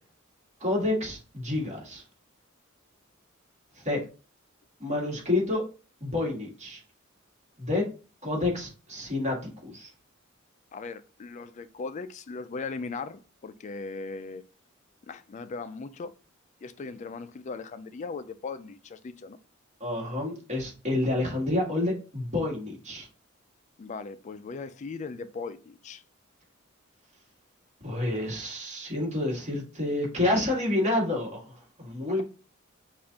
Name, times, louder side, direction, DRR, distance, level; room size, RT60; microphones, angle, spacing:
voice 1, 0.6-2.0 3.7-4.0 4.8-5.6 6.0-6.8 7.6-7.8 8.2-9.9 19.8-23.1 27.8-32.2, left 2 dB, 35° right, 1.7 m, -29 dB
voice 2, 10.7-14.4 15.1-16.1 16.6-19.4 23.8-26.0, left 4 dB, 35° left, 0.3 m, -38 dB
6.3 x 2.5 x 2.8 m
head